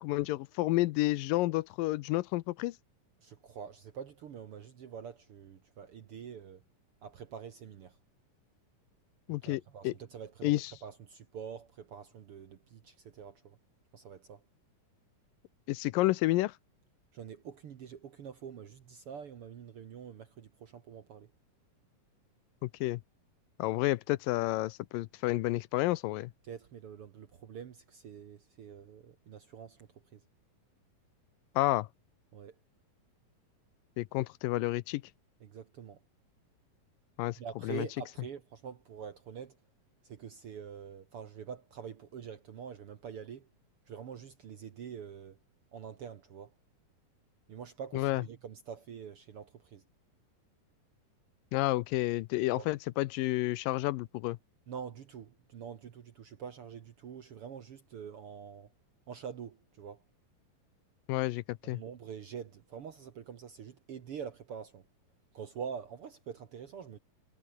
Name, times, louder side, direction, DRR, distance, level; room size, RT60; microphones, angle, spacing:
voice 1, 0.0-2.8 9.3-9.9 10.4-10.7 15.7-16.5 22.6-23.0 23.6-26.3 31.6-31.9 34.0-35.0 37.2-37.9 47.9-48.2 51.5-54.4 61.1-61.8, left 18 dB, 85° left, 2.3 m, -30 dB
voice 2, 3.2-6.6 7.0-8.0 9.3-13.6 13.9-14.4 17.1-21.3 26.4-30.2 32.3-32.5 35.4-36.0 37.4-39.6 40.0-43.5 43.9-45.4 45.7-46.5 47.5-49.8 52.5-52.7 54.7-58.7 59.1-60.0 61.6-64.8 65.3-67.0, right 7 dB, 55° right, 1.6 m, -45 dB
omnidirectional pair, 4.1 m